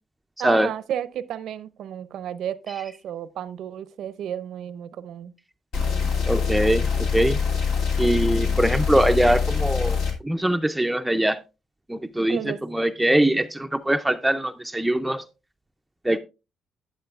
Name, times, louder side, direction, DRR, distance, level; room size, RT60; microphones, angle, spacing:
voice 1, 0.4-5.3 5.8-6.2 8.5-8.6 12.3-12.6, right 10 dB, 75° right, 0.6 m, -33 dB
sound 1, 5.7-10.1, left 6 dB, 90° left, 2.6 m, -24 dB
voice 2, 6.3-6.9 7.1-7.4 8.0-10.0 10.2-11.4 11.9-12.4 12.7-15.2 16.1-16.2, right 1 dB, 5° right, 0.4 m, -22 dB
11.5 x 8.7 x 2.4 m
cardioid pair, 90°, 0 cm